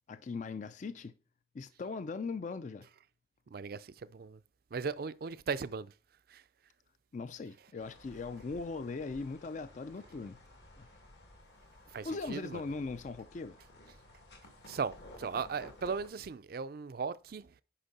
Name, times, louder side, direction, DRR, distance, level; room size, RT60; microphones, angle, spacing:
voice 1, 0.1-1.1 1.5-2.9 7.1-10.4 10.8-10.9 12.0-13.6, left 4 dB, 45° left, 0.4 m, -39 dB
voice 2, 3.5-4.4 4.7-5.9 6.3-6.4 11.9-12.6 14.6-17.5, right 5 dB, 55° right, 0.4 m, -37 dB
sound 1, 7.8-16.1, left 1 dB, 70° left, 2.3 m, -55 dB
10.0 x 5.2 x 4.1 m
head